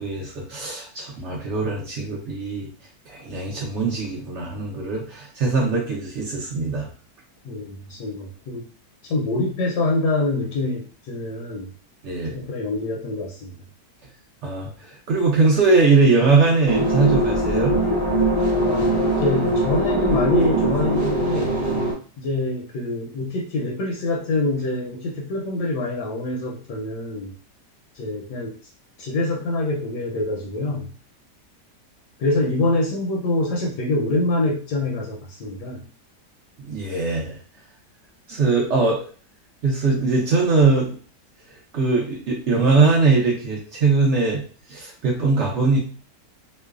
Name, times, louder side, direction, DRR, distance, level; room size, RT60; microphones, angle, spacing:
voice 1, 0.0-2.7 3.1-6.9 12.0-12.4 14.4-17.8 36.6-37.4 38.3-39.0 39.6-40.9 41.7-44.4 44.7-45.8, right 3 dB, 65° right, -2 dB, 0.7 m, -21 dB
voice 2, 7.4-8.7 9.0-11.7 12.3-13.5 18.5-21.6 22.2-27.3 27.9-28.5 29.0-30.9 32.2-35.9, left 2 dB, 75° left, -1 dB, 1.1 m, -25 dB
sound 1, 16.6-21.9, right 1 dB, 15° right, 0.6 m, -21 dB
3.0 x 2.0 x 2.3 m, 0.40 s
omnidirectional pair, 1.8 m